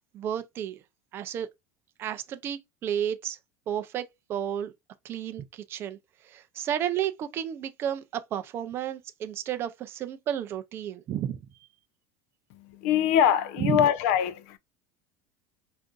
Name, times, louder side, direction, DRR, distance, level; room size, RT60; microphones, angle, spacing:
voice 1, 0.1-0.8 1.1-1.5 2.0-3.4 3.7-4.7 5.0-6.0 6.2-11.4 13.6-13.9, right 10 dB, 25° right, 0.4 m, -32 dB
voice 2, 12.5-14.6, left 9 dB, 60° left, 0.5 m, -23 dB
4.8 x 2.6 x 2.3 m
cardioid pair, 180°, 9 cm